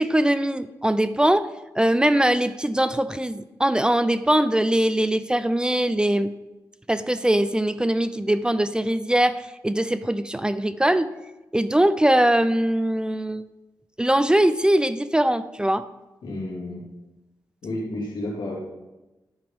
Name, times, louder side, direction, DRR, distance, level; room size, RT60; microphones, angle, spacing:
voice 1, 0.0-1.5 1.8-6.3 6.9-11.1 11.5-13.4 14.0-15.8, right 1 dB, 10° right, 13 dB, 0.3 m, -21 dB
voice 2, 16.2-16.8 17.6-18.6, left 1 dB, 90° left, -3 dB, 2.6 m, -31 dB
10.5 x 5.2 x 5.0 m, 1.1 s
cardioid pair, 90°, 8 cm